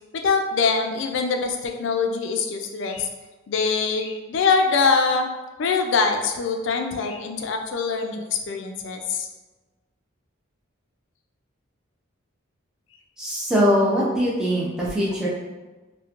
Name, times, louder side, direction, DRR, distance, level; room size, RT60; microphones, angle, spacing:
voice 1, 0.1-3.1 3.5-5.3 5.6-9.3, left 5 dB, 60° left, 4 dB, 0.3 m, -23 dB
voice 2, 13.2-15.3, equal, 5° right, -7 dB, 0.5 m, -22 dB
2.9 x 2.1 x 2.4 m, 1.2 s
head